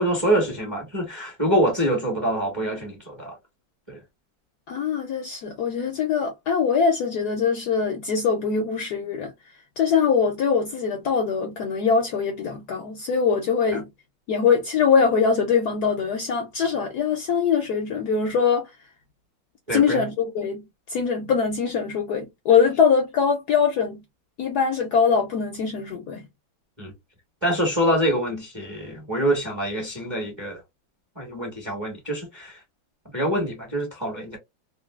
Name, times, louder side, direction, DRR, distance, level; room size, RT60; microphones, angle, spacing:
voice 1, 0.0-3.4 3.9-4.0 13.7-13.8 19.7-20.0 26.8-26.9 27.4-30.6 31.2-32.6 33.1-34.4, right 1 dB, 20° right, 0.8 m, -25 dB
voice 2, 4.7-9.3 9.8-13.9 14.3-18.8 19.7-24.0 24.4-26.3, left 6 dB, 70° left, 1.0 m, -22 dB
3.1 x 2.6 x 2.3 m
omnidirectional pair, 2.2 m